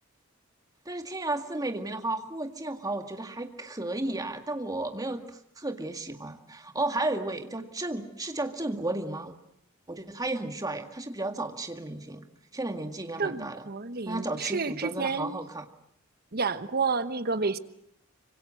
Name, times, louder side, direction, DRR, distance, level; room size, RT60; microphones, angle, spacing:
voice 1, 0.9-5.2 5.6-9.3 9.9-12.3 12.5-13.7 14.1-15.7, right 2 dB, 20° right, 6 dB, 2.0 m, -33 dB
voice 2, 13.2-15.4 16.3-17.6, right 4 dB, 50° right, 12 dB, 1.2 m, -30 dB
25.5 x 25.0 x 7.7 m, 0.73 s
head